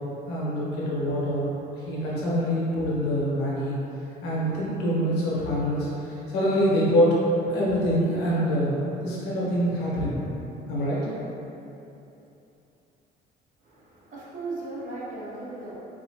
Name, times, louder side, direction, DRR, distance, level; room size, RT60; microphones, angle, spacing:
voice 1, 0.3-1.5 1.9-3.8 4.2-7.2 7.5-8.8 9.0-10.2 10.7-11.1, equal, 85° left, -6 dB, 1.0 m, -25 dB
voice 2, 13.6-15.7, right 2 dB, 50° right, -6 dB, 1.0 m, -37 dB
3.9 x 2.7 x 2.8 m, 2.9 s
cardioid pair, 110°, 17 cm